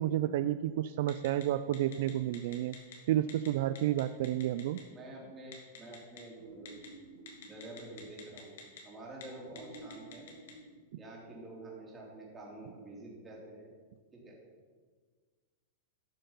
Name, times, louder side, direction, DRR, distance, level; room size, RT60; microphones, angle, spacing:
voice 1, 0.0-2.7 3.1-4.8, right 12 dB, 60° right, 12 dB, 0.3 m, -31 dB
Telephone, 1.1-1.4 1.7-2.9 3.3-3.5 3.7-4.8 5.5-6.2 6.7-6.9 7.3-8.8 9.1-9.2 9.6-10.5, left 10 dB, 75° left, 2.5 m, -48 dB
voice 2, 4.9-6.7 7.4-8.6 8.8-10.3 11.0-13.7 14.1-14.4, right 2 dB, 15° right, -3 dB, 3.1 m, -48 dB
sound 1, 6.4-8.5 9.5-11.6, right 2 dB, 75° right, 1.8 m, -53 dB
12.5 x 5.7 x 5.5 m, 1.5 s
supercardioid pair, 150°, 0 cm